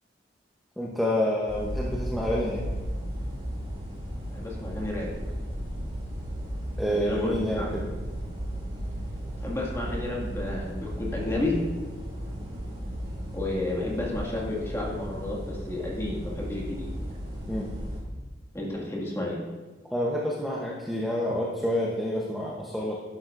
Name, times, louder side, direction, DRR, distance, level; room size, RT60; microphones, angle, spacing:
voice 1, 0.8-2.7 6.8-7.8 17.5-17.7 19.9-23.0, left 1 dB, ahead, -4 dB, 0.9 m, -28 dB
sound 1, 1.5-18.0, equal, 35° right, 2.9 m, -35 dB
voice 2, 4.3-5.1 6.9-7.7 9.4-11.6 13.3-16.9 18.5-19.4, left 2 dB, 15° left, -4 dB, 2.0 m, -31 dB
12.5 x 10.5 x 2.6 m, 1.3 s
head